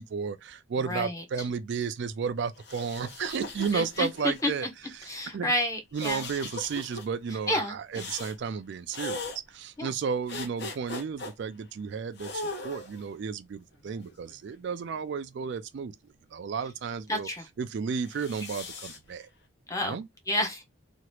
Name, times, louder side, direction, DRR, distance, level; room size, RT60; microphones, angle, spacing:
voice 1, 0.0-4.7 5.0-5.5 5.9-16.0 16.3-17.3 17.6-19.3 19.8-20.1, right 6 dB, 55° right, 0.3 m, -33 dB
voice 2, 0.8-1.2 3.7-4.5 5.0-6.2 7.5-8.0 9.8-9.9 17.1-17.5 19.7-20.0 20.3-20.6, left 1 dB, 15° left, 0.8 m, -30 dB
sound 1, 2.6-4.6 5.9-7.0 7.9-8.4 8.9-9.4 10.3-11.3 12.2-13.1 13.9-15.0 18.0-19.0, left 2 dB, 55° left, 0.8 m, -39 dB
2.9 x 2.4 x 3.0 m
head